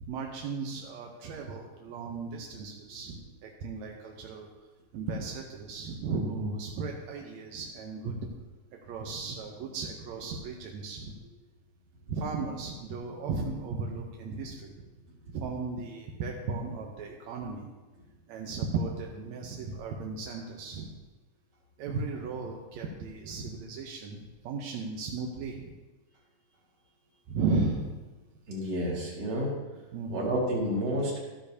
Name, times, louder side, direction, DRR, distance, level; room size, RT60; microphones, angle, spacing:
voice 1, 0.0-4.5 4.9-8.1 8.7-11.2 12.1-14.7 15.3-17.7 18.3-20.9 21.8-25.7 27.3-27.9 29.9-30.3, right 4 dB, 75° right, 0 dB, 1.7 m, -35 dB
voice 2, 28.5-29.5 30.1-31.2, equal, 50° right, -3 dB, 2.9 m, -30 dB
12.5 x 10.0 x 2.8 m, 1.2 s
omnidirectional pair, 4.0 m